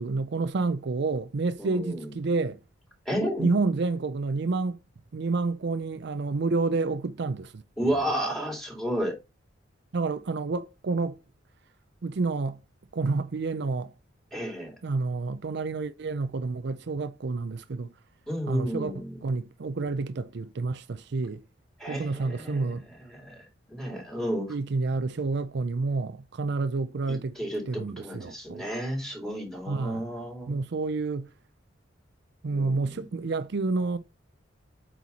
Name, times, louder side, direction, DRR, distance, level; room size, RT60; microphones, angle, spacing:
voice 1, 0.0-2.6 3.4-4.8 5.1-7.6 9.9-11.2 12.0-12.6 12.9-13.9 14.8-17.9 18.5-21.4 21.9-22.8 24.5-27.4 27.7-28.6 29.7-30.1 30.5-31.3 32.4-34.0, right 3 dB, 65° right, 0.5 m, -29 dB
voice 2, 1.6-2.1 3.0-3.5 7.8-9.2 14.3-14.7 18.3-19.2 21.8-22.7 23.1-23.4 23.7-24.5 27.1-30.6 32.5-33.0, equal, ahead, 3.2 m, -32 dB
8.3 x 4.5 x 4.1 m
head